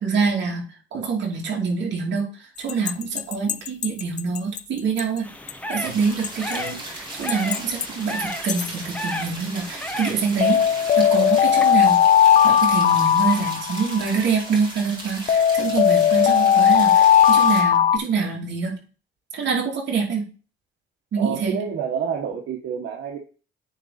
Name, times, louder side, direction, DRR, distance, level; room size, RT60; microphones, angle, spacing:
voice 1, 0.0-5.3 5.7-10.7 11.0-12.0 12.4-18.8 19.3-20.3 21.1-21.6, right 5 dB, 60° right, -1 dB, 2.8 m, -25 dB
sound 1, 2.7-4.6 5.0-5.1 5.5-5.6 6.2-6.7 7.3-7.8 8.3-8.7 10.4-14.2 15.3-18.0, left 9 dB, 35° left, 0.4 m, -17 dB
sound 2, 5.2-11.7, left 1 dB, 5° left, 0.9 m, -34 dB
sound 3, 5.8-17.6, right 2 dB, 20° right, 2.1 m, -37 dB
voice 2, 21.2-23.2, right 7 dB, 80° right, 1 dB, 1.2 m, -28 dB
9.1 x 3.8 x 4.1 m, 0.37 s
cardioid pair, 130°, 21 cm